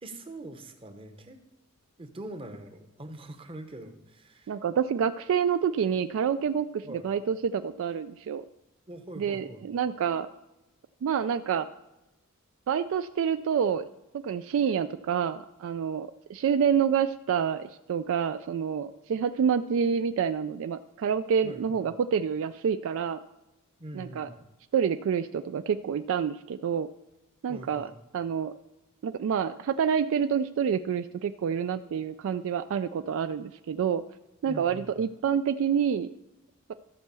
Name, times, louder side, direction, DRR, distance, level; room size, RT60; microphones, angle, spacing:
voice 1, 0.0-1.4 2.0-4.6 6.8-7.1 8.9-9.7 21.4-21.8 23.8-24.5 27.5-28.0 34.4-35.0, right 1 dB, 25° right, 7 dB, 0.9 m, -43 dB
voice 2, 4.5-8.4 9.2-10.3 11.0-11.7 12.7-13.8 14.2-23.2 23.9-24.3 24.7-26.9 27.4-28.5 29.0-34.0 34.4-36.1, right 7 dB, 60° right, 12 dB, 0.3 m, -28 dB
13.5 x 4.5 x 6.8 m, 0.98 s
head